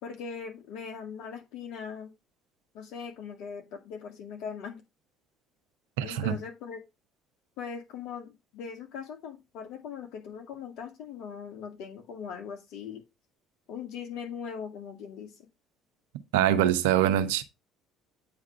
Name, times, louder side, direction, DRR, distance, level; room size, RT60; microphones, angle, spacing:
voice 1, 0.0-2.1 2.7-4.8 6.0-6.8 7.6-13.0 13.7-15.3, left 6 dB, 60° left, 2.2 m, -40 dB
voice 2, 6.0-6.4 16.3-17.4, right 11 dB, 75° right, 0.8 m, -24 dB
8.7 x 3.6 x 5.6 m
figure-of-eight pair, 55°, 0 cm